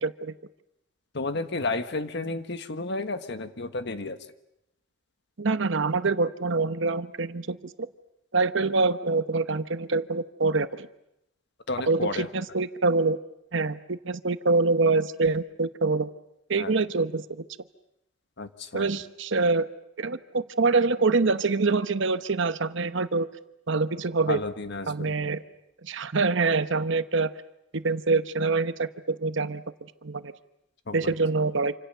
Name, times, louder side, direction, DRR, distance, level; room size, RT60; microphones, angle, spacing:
voice 1, 0.0-0.3 5.4-7.7 8.3-10.9 11.9-13.2 13.5-16.1 16.5-17.4 18.7-19.7 20.0-23.3 23.7-24.4 24.9-25.4 25.8-27.3 27.7-29.6 30.0-30.3 30.9-31.7, right 3 dB, 65° right, 12 dB, 1.0 m, -25 dB
voice 2, 1.1-4.2 11.7-12.3 16.6-16.7 18.4-18.9 24.3-25.3 30.9-31.1, left 3 dB, 60° left, 10 dB, 1.5 m, -32 dB
27.5 x 26.5 x 6.8 m, 0.82 s
head